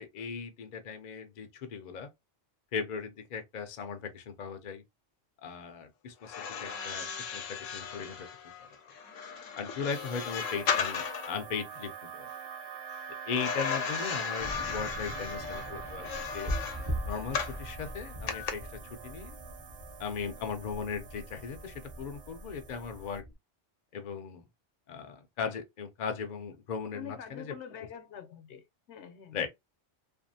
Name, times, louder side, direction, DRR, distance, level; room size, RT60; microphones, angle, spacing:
voice 1, 0.0-2.1 2.7-4.8 5.4-7.1 7.3-8.3 9.6-12.3 13.3-16.5 17.1-19.4 20.0-23.2 23.9-24.4 24.9-27.5 29.3-29.5, left 6 dB, 55° left, 0.5 m, -38 dB
sound 1, 6.2-11.4 13.3-17.6 18.3-18.5, left 6 dB, 90° left, 1.0 m, -36 dB
sound 2, 9.9-23.2, right 7 dB, 80° right, 0.9 m, -45 dB
sound 3, 14.4-23.3, equal, 30° right, 0.8 m, -41 dB
voice 2, 26.9-29.4, left 8 dB, 70° left, 0.8 m, -46 dB
2.5 x 2.4 x 2.6 m
omnidirectional pair, 1.3 m